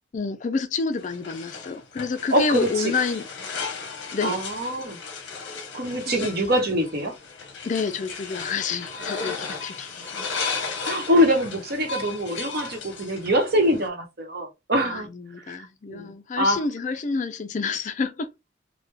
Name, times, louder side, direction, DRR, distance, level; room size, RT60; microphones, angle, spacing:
voice 1, 0.1-3.2 4.1-4.4 6.1-6.3 7.6-10.1 14.8-18.3, left 4 dB, 40° left, 0.4 m, -28 dB
sound 1, 1.0-13.9, left 5 dB, 65° left, 0.7 m, -35 dB
voice 2, 2.3-2.9 4.2-5.0 5.7-7.1 10.8-15.1 15.5-15.6 15.9-16.6, equal, 50° right, 0.9 m, -24 dB
3.3 x 2.1 x 3.3 m
head